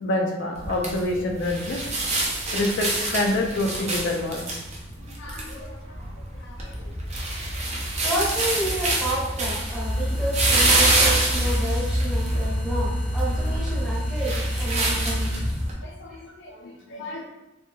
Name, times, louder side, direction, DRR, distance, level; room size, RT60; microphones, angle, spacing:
voice 1, 0.0-1.8 2.5-4.6 5.1-5.8 6.4-6.9 7.7-7.8 12.3-12.4 15.8-17.3, left 2 dB, 65° left, 1 dB, 0.4 m, -28 dB
sound 1, 0.6-15.7, right 2 dB, 35° right, 0.5 m, -27 dB
voice 2, 8.0-15.4 16.1-16.2, right 1 dB, ahead, -8 dB, 1.0 m, -30 dB
sound 2, 9.7-15.8, equal, 15° left, 0.6 m, -27 dB
2.6 x 2.6 x 2.3 m, 0.98 s
head